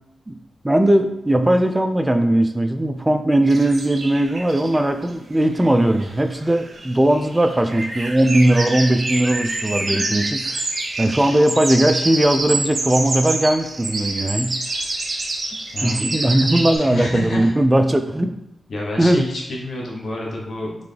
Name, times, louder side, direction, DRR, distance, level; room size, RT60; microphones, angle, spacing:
voice 1, 0.6-10.7 11.0-14.6 15.5-18.4 19.0-19.3, right 1 dB, 15° right, 8 dB, 0.5 m, -18 dB
sound 1, 3.4-5.0 5.6-5.7 6.0-6.1 6.3-16.8, right 2 dB, 55° right, 0.8 m, -27 dB
voice 2, 16.8-17.5 18.7-20.7, left 2 dB, 70° left, -2 dB, 1.0 m, -28 dB
3.8 x 3.3 x 3.3 m, 0.85 s
cardioid pair, 55°, 0 cm